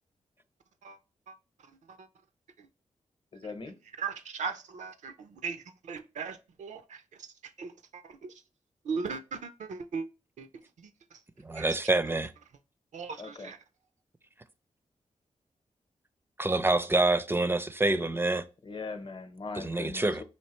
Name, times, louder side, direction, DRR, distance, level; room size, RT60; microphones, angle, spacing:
voice 1, 1.6-2.1 2.6-2.7 4.0-8.4 8.8-10.1 10.4-10.5 10.8-11.2 11.5-11.7 12.9-13.6, right 5 dB, 70° right, 0.5 m, -39 dB
voice 2, 3.3-3.7 13.2-13.5 18.6-20.1, left 4 dB, 40° left, 0.8 m, -40 dB
voice 3, 11.4-12.3 16.4-18.4 19.6-20.2, right 2 dB, 20° right, 0.4 m, -26 dB
4.4 x 2.8 x 2.9 m
supercardioid pair, 45°, 13 cm